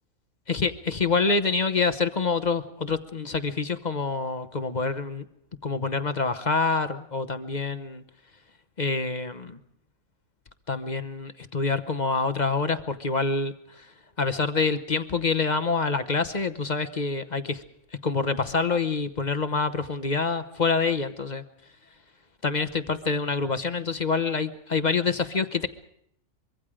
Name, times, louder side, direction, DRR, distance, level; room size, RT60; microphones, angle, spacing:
voice 1, 0.5-5.3 5.6-8.0 8.8-9.6 10.7-17.6 18.0-21.4 22.4-25.7, left 4 dB, 35° left, 11 dB, 1.0 m, -26 dB
24.5 x 23.5 x 5.0 m, 0.72 s
omnidirectional pair, 1.4 m